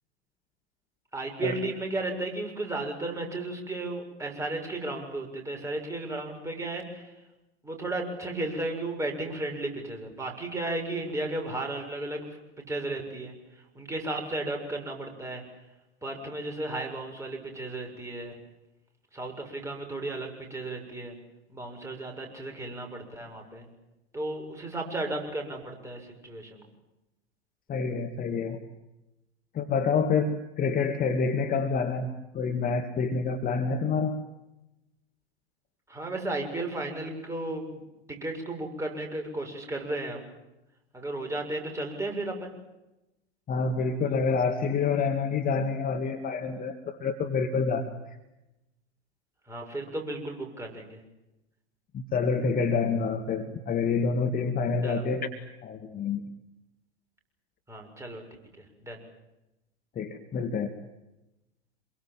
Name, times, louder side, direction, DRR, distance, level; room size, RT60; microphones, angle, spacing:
voice 1, 1.1-7.1 7.6-13.3 13.8-15.4 16.0-18.4 19.1-21.2 21.5-23.7 24.1-26.7 35.9-37.8 38.1-40.2 40.9-42.5 49.5-51.0 54.8-55.0 57.7-58.2 58.8-59.0, right 2 dB, 10° right, 2 dB, 7.1 m, -34 dB
voice 2, 27.7-28.6 29.5-32.1 32.3-34.1 43.5-47.9 51.9-55.3 55.6-56.2 60.0-60.7, left 5 dB, 25° left, 6 dB, 2.2 m, -27 dB
27.5 x 23.5 x 7.7 m, 0.96 s
figure-of-eight pair, 90°, 33 cm